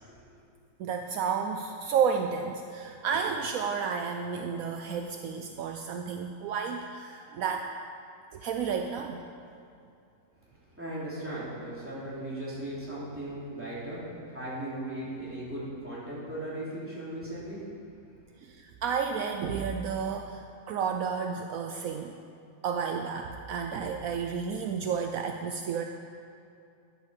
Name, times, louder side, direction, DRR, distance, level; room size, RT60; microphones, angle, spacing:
voice 1, 0.8-7.7 8.3-9.3 18.4-22.1 22.6-25.8, right 6 dB, 75° right, 5 dB, 0.8 m, -31 dB
voice 2, 10.3-17.6 18.0-18.1, right 1 dB, 5° right, -9 dB, 3.3 m, -38 dB
10.5 x 8.1 x 6.6 m, 2.5 s
omnidirectional pair, 1.9 m